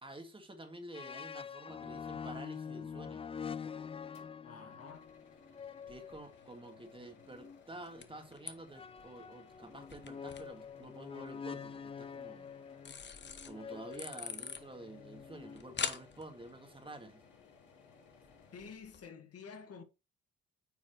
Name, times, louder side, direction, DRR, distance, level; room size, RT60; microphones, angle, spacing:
voice 1, 0.0-3.3 5.9-12.5 13.5-17.2, right 1 dB, 15° right, 2.0 m, -50 dB
sound 1, 0.9-7.6 8.7-16.1, left 6 dB, 20° left, 0.3 m, -46 dB
sound 2, 4.1-18.7, left 4 dB, 85° left, 3.3 m, -63 dB
voice 2, 4.4-5.0 18.5-19.8, left 5 dB, 50° left, 1.8 m, -50 dB
sound 3, 4.9-19.0, left 6 dB, 35° left, 1.1 m, -48 dB
9.1 x 4.7 x 3.1 m
cardioid pair, 90°, 30 cm